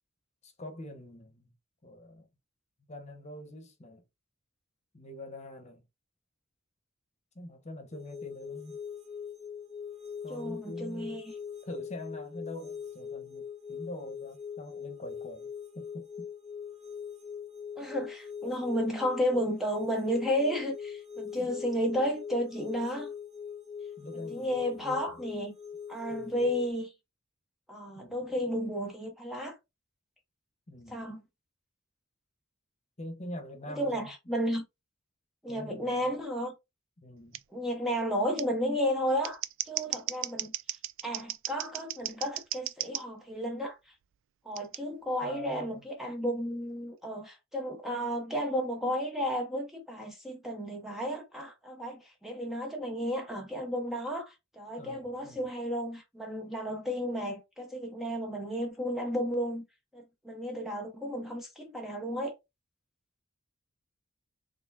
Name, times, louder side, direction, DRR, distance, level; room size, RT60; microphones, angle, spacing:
voice 1, 0.4-1.5 1.8-2.3 2.9-4.0 4.9-5.8 7.3-8.8 10.2-11.3 11.6-15.5 15.7-16.3 18.4-18.6 21.4-21.6 24.0-25.2 26.1-26.5 28.0-28.5 30.7-31.1 33.0-34.1 35.5-36.1 37.0-37.4 45.2-45.8 54.8-55.5, left 1 dB, 35° left, 1.0 m, -44 dB
sound 1, 7.9-26.7, left 7 dB, 35° right, 1.0 m, -42 dB
voice 2, 10.3-11.3 17.8-23.1 24.3-25.5 25.9-26.9 27.7-29.6 30.9-31.2 33.8-34.6 35.4-36.5 37.5-39.4 39.7-40.5 41.0-43.8 44.5-59.6 59.9-62.4, equal, ahead, 0.7 m, -33 dB
Scissors, 37.3-37.4 38.4-38.5 39.1-43.0 44.6-44.8, right 14 dB, 65° right, 0.3 m, -36 dB
4.2 x 3.2 x 2.6 m
head